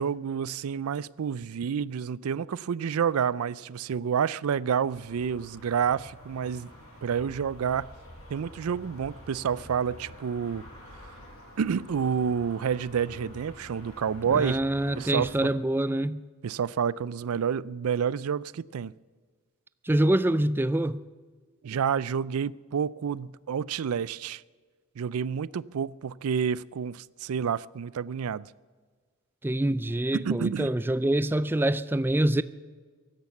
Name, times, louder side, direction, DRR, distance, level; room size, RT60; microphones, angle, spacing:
voice 1, 0.0-6.7 7.0-7.9 8.3-10.6 11.6-14.6 15.0-15.3 16.4-18.9 21.6-24.4 25.0-28.5 30.1-30.7, right 7 dB, 85° right, 0.4 m, -29 dB
sound 1, 4.8-15.3, equal, 75° left, 5.9 m, -47 dB
voice 2, 14.3-16.2 19.8-21.0 29.4-32.4, right 1 dB, 10° right, 0.4 m, -25 dB
16.0 x 11.5 x 7.1 m
head